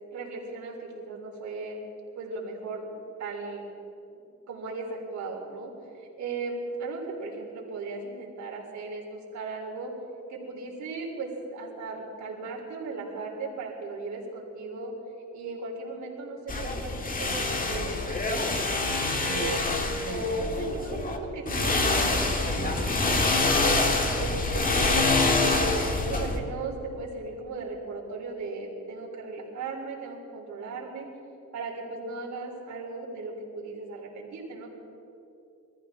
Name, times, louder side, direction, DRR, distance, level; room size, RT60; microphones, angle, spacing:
voice 1, 0.1-1.8 2.2-3.6 4.1-4.2 4.5-9.9 10.3-14.9 15.3-19.6 20.0-22.8 23.2-23.8 24.2-25.7 26.1-31.1 31.5-34.7, right 3 dB, 70° right, -2 dB, 3.7 m, -36 dB
sound 1, 16.5-21.2 21.5-26.4, left 3 dB, 30° left, 1.7 m, -26 dB
22.5 x 14.0 x 3.7 m, 2.7 s
cardioid pair, 90°, 30 cm